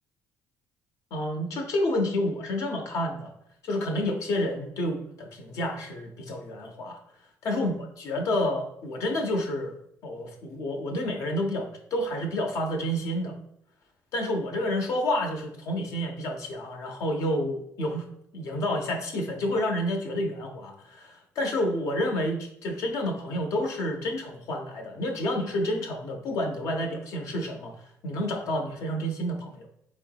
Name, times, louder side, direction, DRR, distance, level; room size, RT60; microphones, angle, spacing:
voice 1, 1.1-3.3 3.6-7.0 7.4-9.8 10.0-13.3 14.1-18.1 18.3-27.7 28.0-29.7, left 1 dB, 65° left, 3 dB, 0.7 m, -29 dB
4.4 x 2.9 x 2.3 m, 0.75 s
supercardioid pair, 70°, 6 cm